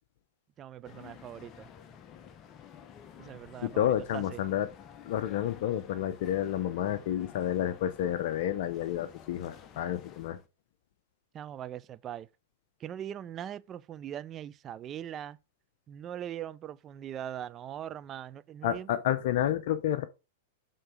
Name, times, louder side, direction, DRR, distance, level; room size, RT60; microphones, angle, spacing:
voice 1, 0.6-1.7 3.2-4.4 11.3-12.3 12.8-15.4 15.9-18.9, right 10 dB, 30° right, 0.4 m, -41 dB
sound 1, 0.8-10.5, left 8 dB, 35° left, 0.9 m, -52 dB
voice 2, 3.6-4.7 5.1-10.4 18.6-20.1, left 11 dB, 60° left, 0.6 m, -30 dB
6.6 x 3.8 x 5.1 m
hypercardioid pair, 110°, 0 cm